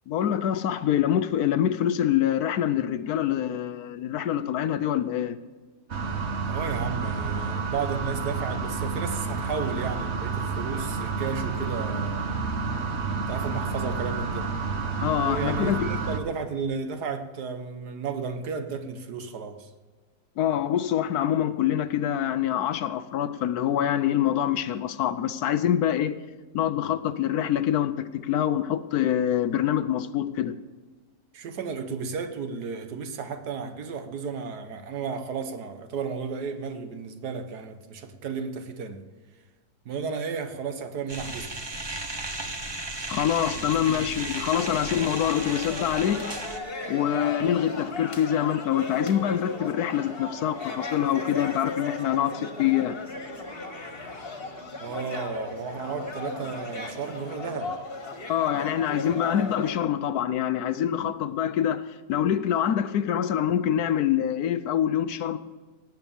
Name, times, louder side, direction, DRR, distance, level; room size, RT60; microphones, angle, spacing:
voice 1, 0.1-5.4 15.0-15.9 20.4-26.2 26.5-30.6 43.1-46.3 46.9-53.0 58.3-65.4, left 10 dB, 70° left, 1.1 m, -25 dB
sound 1, 5.9-16.2, right 4 dB, 45° right, 1.3 m, -30 dB
voice 2, 6.5-12.3 13.3-14.5 15.2-19.7 31.3-39.0 39.8-41.5 43.5-44.1 54.8-57.8, right 5 dB, 70° right, 1.6 m, -33 dB
sound 2, 41.1-46.6, right 2 dB, 20° right, 0.8 m, -35 dB
sound 3, 44.5-59.8, left 2 dB, 35° left, 1.8 m, -36 dB
18.0 x 8.2 x 7.1 m
omnidirectional pair, 1.8 m